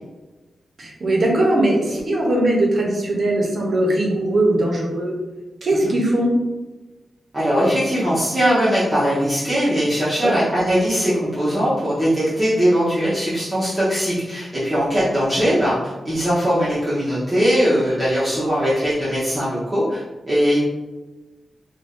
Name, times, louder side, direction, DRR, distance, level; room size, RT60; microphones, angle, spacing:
voice 1, 0.8-5.1 5.6-6.4 10.2-10.4, right 1 dB, 55° right, -2 dB, 0.7 m, -20 dB
voice 2, 7.3-20.6, equal, 15° right, -11 dB, 0.8 m, -20 dB
2.6 x 2.3 x 3.5 m, 1.1 s
wide cardioid pair, 120°, 0 cm